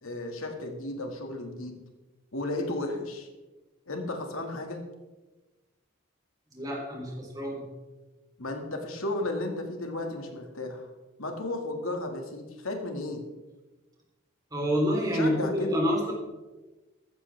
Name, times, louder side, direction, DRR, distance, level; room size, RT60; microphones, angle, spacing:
voice 1, 0.0-1.8 2.3-3.3 3.9-4.8 8.4-10.9 11.2-13.2 15.1-15.8, left 2 dB, 80° left, 3 dB, 2.1 m, -34 dB
voice 2, 6.5-7.6 14.5-16.1, equal, 20° right, -1 dB, 3.6 m, -27 dB
14.5 x 14.5 x 3.5 m, 1.1 s
head